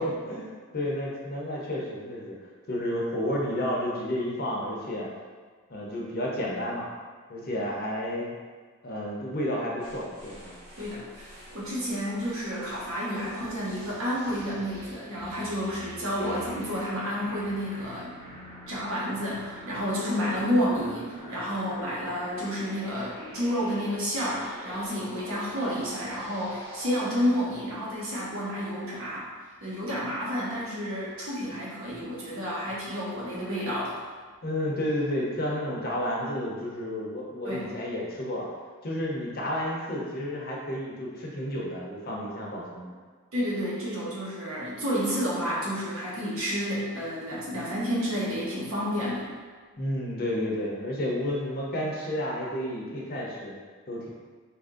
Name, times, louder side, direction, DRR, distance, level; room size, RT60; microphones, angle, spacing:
voice 1, 0.0-2.3 2.7-5.1 5.7-6.9 7.3-8.3 8.8-10.6 34.4-38.5 38.8-42.9 49.8-53.5 53.9-54.1, left 1 dB, 45° left, -3 dB, 0.6 m, -31 dB
sound 1, 9.8-27.5, equal, 25° right, 0.7 m, -46 dB
voice 2, 10.8-11.3 11.5-18.1 18.7-29.2 29.6-34.0 37.4-37.7 43.3-49.3, equal, 70° right, -7 dB, 1.0 m, -30 dB
2.8 x 2.5 x 3.7 m, 1.5 s
head